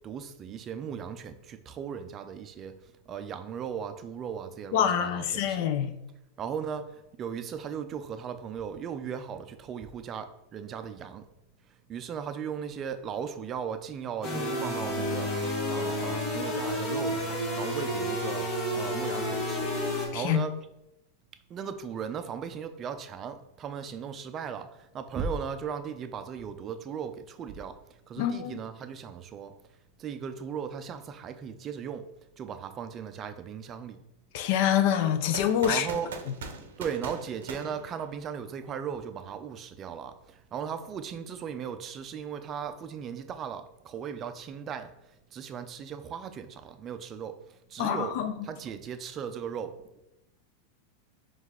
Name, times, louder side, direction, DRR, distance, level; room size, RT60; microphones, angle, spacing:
voice 1, 0.0-2.8 3.1-5.6 6.4-11.3 11.9-15.3 15.7-18.5 18.7-19.7 20.1-20.5 21.5-29.5 30.0-32.1 32.4-34.0 35.6-36.1 36.8-48.2 48.4-49.7, right 7 dB, 30° right, 0.4 m, -37 dB
voice 2, 4.7-5.9 20.1-20.4 28.2-28.6 34.3-35.9 47.8-48.3, left 9 dB, 60° left, 0.4 m, -26 dB
sound 1, 14.2-20.1, equal, 40° left, 1.3 m, -30 dB
sound 2, 35.3-38.5, right 5 dB, 85° right, 0.5 m, -41 dB
4.5 x 2.4 x 3.5 m
supercardioid pair, 135°, 0 cm